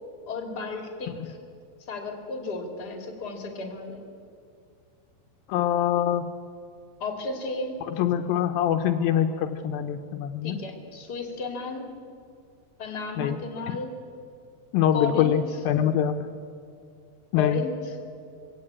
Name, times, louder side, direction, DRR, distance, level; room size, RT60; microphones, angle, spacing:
voice 1, 0.3-1.4 1.9-4.0 7.0-7.7 10.4-11.8 12.8-13.9 14.9-15.3 17.4-17.9, left 3 dB, 30° left, 3 dB, 2.8 m, -33 dB
voice 2, 5.5-6.3 7.8-10.6 13.2-13.4 13.7-13.8 14.7-16.3 17.3-17.6, left 10 dB, 80° left, 7 dB, 2.5 m, -24 dB
23.0 x 17.0 x 8.7 m, 2.3 s
omnidirectional pair, 4.3 m